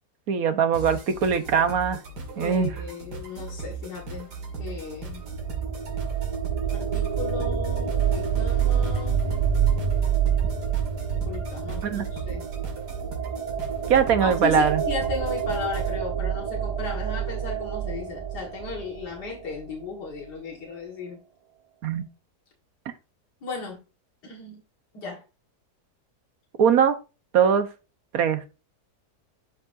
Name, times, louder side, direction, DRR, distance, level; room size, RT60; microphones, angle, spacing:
voice 1, 0.3-2.0 2.4-2.7 11.8-12.0 13.9-14.8 21.8-22.0 26.6-26.9 27.3-27.7 28.1-28.4, right 7 dB, 65° right, 1.5 m, -21 dB
sound 1, 0.7-16.0, right 4 dB, 90° right, 2.7 m, -37 dB
voice 2, 2.4-4.3 4.6-5.2 6.7-9.2 11.2-12.5 14.2-21.2 23.4-23.8 24.2-24.6 24.9-25.2, left 5 dB, 85° left, 2.4 m, -36 dB
sound 2, 4.8-19.6, right 7 dB, 25° right, 1.2 m, -27 dB
12.0 x 5.3 x 2.7 m
omnidirectional pair, 1.7 m